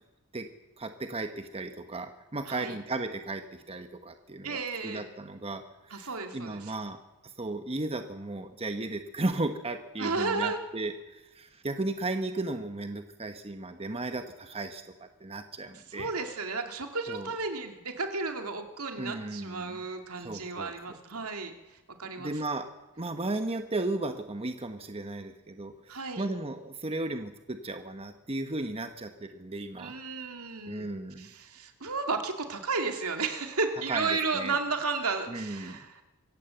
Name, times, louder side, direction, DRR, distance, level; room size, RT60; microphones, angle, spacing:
voice 1, 0.8-16.1 17.1-17.3 19.0-19.8 20.1-20.7 22.2-22.7 23.0-29.9 30.7-31.3 33.9-34.5 35.3-35.9, right 2 dB, 25° right, 7 dB, 1.1 m, -35 dB
voice 2, 2.5-2.8 4.4-5.0 5.9-6.7 10.0-10.6 15.9-21.5 22.0-22.3 25.9-26.3 29.8-30.9 31.2-36.0, right 4 dB, 75° right, 5 dB, 2.6 m, -33 dB
24.5 x 16.0 x 7.9 m, 1.0 s
head